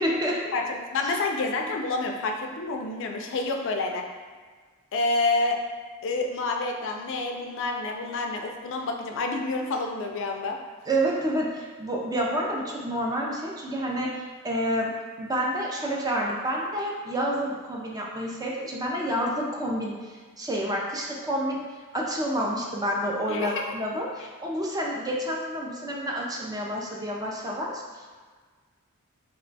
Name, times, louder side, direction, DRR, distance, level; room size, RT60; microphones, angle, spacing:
voice 1, 0.0-0.4 10.9-14.1 14.4-14.9 15.2-19.9 20.4-21.6 21.9-28.1, equal, 15° right, -2 dB, 0.4 m, -29 dB
voice 2, 0.5-4.1 4.9-5.6 6.0-10.6 23.3-23.8, left 3 dB, 60° left, 2 dB, 0.4 m, -28 dB
2.9 x 2.2 x 3.9 m, 1.5 s
head